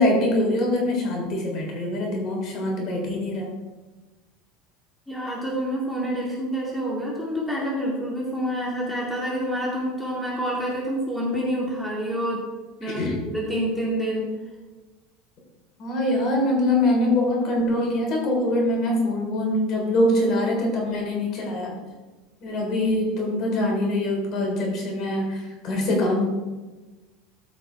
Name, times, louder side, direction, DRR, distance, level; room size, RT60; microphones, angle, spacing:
voice 1, 0.0-3.5 12.8-13.2 15.8-21.7 22.4-26.2, left 1 dB, 45° left, 0 dB, 3.5 m, -23 dB
voice 2, 5.1-12.4 12.8-13.0 13.3-14.3, equal, ahead, -6 dB, 2.3 m, -27 dB
13.5 x 5.9 x 4.6 m, 1.2 s
supercardioid pair, 150°, 0 cm